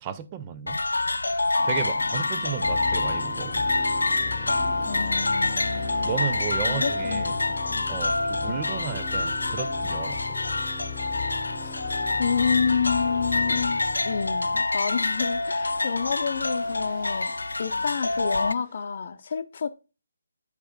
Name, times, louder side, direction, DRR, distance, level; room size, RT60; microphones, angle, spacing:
voice 1, 0.0-0.8 1.6-3.7 6.0-7.3 7.9-10.4, right 9 dB, 25° right, 0.6 m, -34 dB
sound 1, 0.7-18.5, left 2 dB, 75° left, 0.4 m, -27 dB
sound 2, 1.6-18.8, right 1 dB, 40° right, 3.4 m, -48 dB
sound 3, 2.6-14.6, left 6 dB, 10° left, 1.2 m, -38 dB
voice 2, 4.9-6.2 6.7-7.4 7.6-8.0 8.4-8.6 11.5-17.3 17.6-19.7, left 6 dB, 45° left, 0.8 m, -29 dB
8.4 x 5.1 x 2.3 m
figure-of-eight pair, 145°, 0 cm